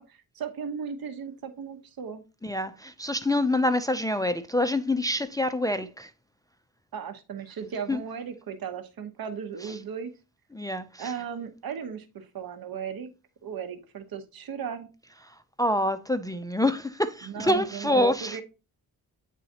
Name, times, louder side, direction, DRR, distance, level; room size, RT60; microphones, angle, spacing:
voice 1, 0.0-2.2 6.9-10.1 11.0-13.1 13.4-14.9 17.2-18.4, right 7 dB, 65° right, 1.1 m, -36 dB
voice 2, 2.4-6.1 7.9-8.0 9.7-9.8 10.5-11.1 15.6-18.4, left 1 dB, 10° left, 0.4 m, -26 dB
9.1 x 3.9 x 2.8 m
cardioid pair, 85°, 38 cm